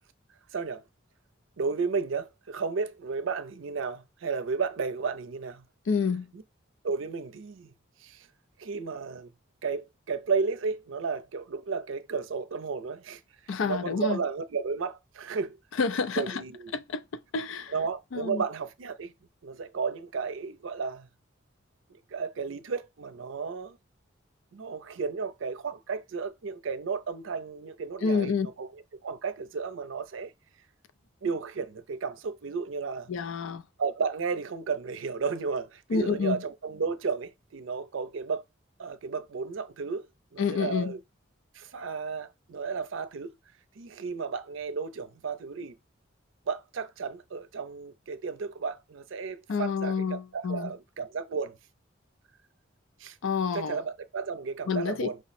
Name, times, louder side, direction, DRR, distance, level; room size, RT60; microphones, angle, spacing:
voice 1, 0.5-0.8 1.6-5.6 6.3-6.4 6.8-7.7 8.0-8.3 8.6-9.3 9.6-13.2 13.6-15.6 16.2-16.7 17.7-19.1 19.4-21.1 21.9-23.8 24.5-30.3 31.2-33.1 33.8-38.4 38.8-40.1 40.3-41.0 41.5-43.3 43.8-45.7 46.5-51.6 53.0-53.2 53.5-55.2, right 5 dB, 75° right, 0.5 m, -33 dB
voice 2, 5.9-6.3 13.5-14.2 15.8-16.4 16.7-17.0 17.3-17.7 18.1-18.4 28.0-28.5 33.1-33.6 35.9-36.4 40.4-40.9 49.5-50.7 53.2-53.8 54.7-55.1, left 5 dB, 75° left, 0.4 m, -28 dB
5.0 x 2.0 x 4.1 m
head